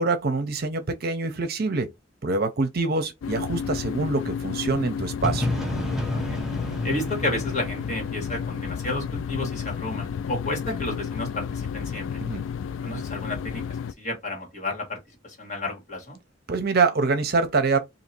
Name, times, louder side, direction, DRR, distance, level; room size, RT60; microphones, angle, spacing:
voice 1, 0.0-1.9 2.2-5.5 12.2-12.4 16.5-17.8, right 3 dB, 55° right, 0.7 m, -25 dB
sound 1, 3.2-13.9, left 7 dB, 85° left, 0.3 m, -32 dB
sound 2, 5.2-9.1, left 1 dB, ahead, 0.7 m, -31 dB
voice 2, 6.1-6.4 6.8-12.2 12.8-13.6 14.0-15.0 15.2-16.2, left 2 dB, 40° left, 2.0 m, -31 dB
2.8 x 2.8 x 4.2 m
head